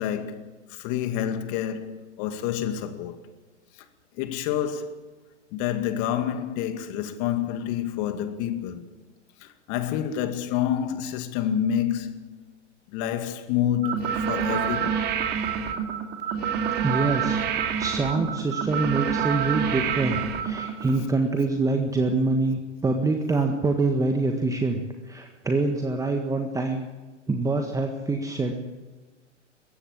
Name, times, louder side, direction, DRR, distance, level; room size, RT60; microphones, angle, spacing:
voice 1, 0.0-3.2 3.8-3.9 4.2-5.0 5.5-8.8 9.4-12.3 12.9-15.0, left 10 dB, 40° left, 2.3 m, -28 dB
sound 1, 13.8-21.0, right 8 dB, 25° right, 2.6 m, -27 dB
voice 2, 16.8-26.9 27.3-28.5, right 3 dB, 10° right, 1.6 m, -25 dB
22.0 x 17.0 x 8.6 m
figure-of-eight pair, 105°, 36 cm